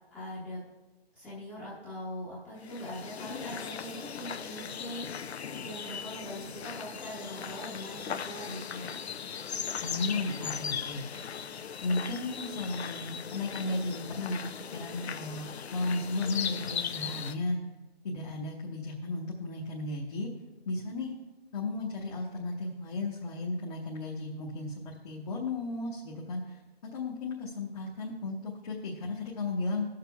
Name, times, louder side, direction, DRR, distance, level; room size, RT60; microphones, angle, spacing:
voice 1, 0.1-0.6 1.1-9.0, equal, 5° left, -10 dB, 0.8 m, -42 dB
sound 1, 2.6-17.3, left 7 dB, 85° left, 0.5 m, -38 dB
voice 2, 9.8-11.2 11.8-14.4 14.7-17.6 18.0-20.3 20.7-21.1 21.5-26.6 26.9-29.9, left 2 dB, 40° left, -3 dB, 1.0 m, -34 dB
17.5 x 6.7 x 2.3 m, 1.1 s
figure-of-eight pair, 150°, 31 cm